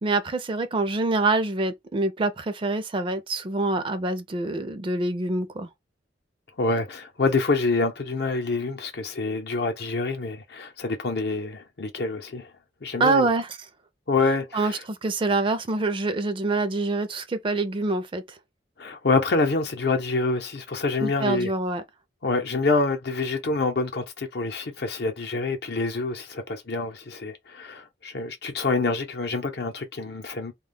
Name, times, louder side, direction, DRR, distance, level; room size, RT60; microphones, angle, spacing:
voice 1, 0.0-5.7 13.0-13.7 14.5-18.4 21.0-21.8, right 2 dB, 30° right, 0.4 m, -25 dB
voice 2, 6.6-12.5 12.8-13.3 14.1-14.6 18.8-21.5 22.2-30.5, left 3 dB, 65° left, 0.7 m, -26 dB
2.3 x 2.1 x 3.4 m
head